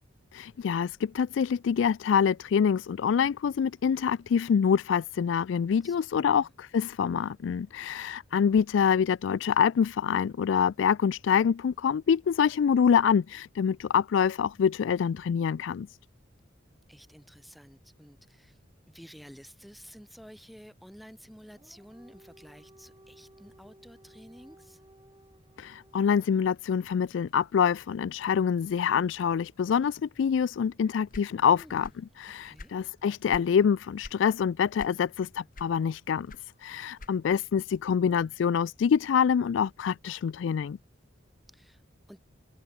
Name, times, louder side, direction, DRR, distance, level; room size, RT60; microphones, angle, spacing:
voice 1, 0.3-15.9 25.6-31.9 32.2-40.8, left 7 dB, 75° left, 0.3 m, -26 dB
voice 2, 5.8-6.5 16.9-18.6 18.9-24.8 31.5-31.8 32.4-32.7 41.5-41.8 42.1-42.2, equal, ahead, 4.9 m, -51 dB
Dog, 21.4-26.5, right 1 dB, 20° right, 4.2 m, -58 dB
sound 1, 31.1-32.1 32.4-33.6 34.0-34.3 34.8-35.2 35.5-37.4, left 2 dB, 45° left, 1.7 m, -46 dB
head